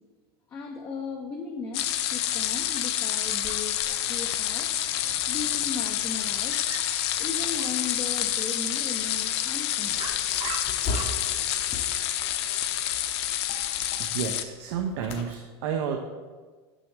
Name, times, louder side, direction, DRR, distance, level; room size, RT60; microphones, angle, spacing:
voice 1, 0.5-3.8 4.1-4.7 5.3-6.6 7.2-10.1 11.7-11.9, left 5 dB, 25° left, 1 dB, 0.5 m, -37 dB
sound 1, 1.7-14.4, left 11 dB, 75° left, 0.5 m, -28 dB
Dog, 3.3-13.9, right 5 dB, 35° right, 0.8 m, -45 dB
sound 2, 9.8-15.3, left 2 dB, 50° left, 0.9 m, -39 dB
voice 2, 14.0-16.0, right 7 dB, 75° right, 3 dB, 0.6 m, -31 dB
6.2 x 6.0 x 3.2 m, 1.4 s
supercardioid pair, 140°, 14 cm